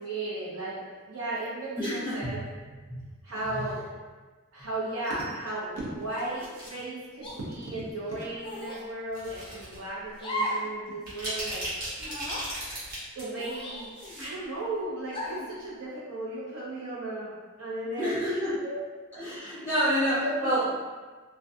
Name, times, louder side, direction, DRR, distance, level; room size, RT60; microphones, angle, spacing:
voice 1, 0.0-2.4 3.2-3.9 4.5-11.6 13.1-13.9 14.2-17.3 17.6-18.2 18.4-18.8 20.2-20.7, right 2 dB, 75° right, -7 dB, 0.8 m, -35 dB
voice 2, 1.8-2.3 2.9-3.0 3.5-3.7 18.0-18.6 19.1-20.7, equal, 10° right, -12 dB, 0.8 m, -28 dB
sound 1, 6.0-6.8 7.6-7.9 9.1-9.8 10.2-10.3 10.9-13.2 13.5-14.3 14.6-14.7, equal, 40° right, 1.0 m, -37 dB
sound 2, 6.1-6.5 7.2-7.4 8.4-8.8 10.2-10.7 11.0-11.1 12.0-12.4 13.3-14.3 15.1-15.5, equal, 25° left, 0.3 m, -35 dB
2.3 x 2.2 x 2.7 m, 1.4 s
head